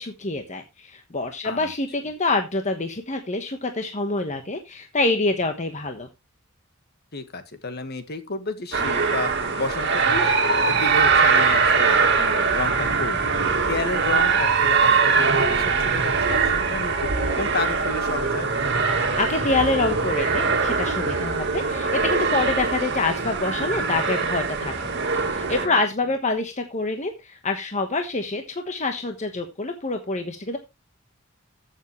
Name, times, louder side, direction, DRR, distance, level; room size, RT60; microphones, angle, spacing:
voice 1, 0.0-6.1 18.9-24.7 25.1-30.6, left 3 dB, 35° left, 5 dB, 1.2 m, -26 dB
voice 2, 7.1-9.3 9.6-10.4 10.6-17.1 17.4-18.5 25.6-25.8, left 3 dB, 50° left, 9 dB, 1.6 m, -31 dB
sound 1, 8.7-25.7, right 5 dB, 60° right, 2.2 m, -22 dB
14.5 x 7.4 x 3.1 m, 0.23 s
head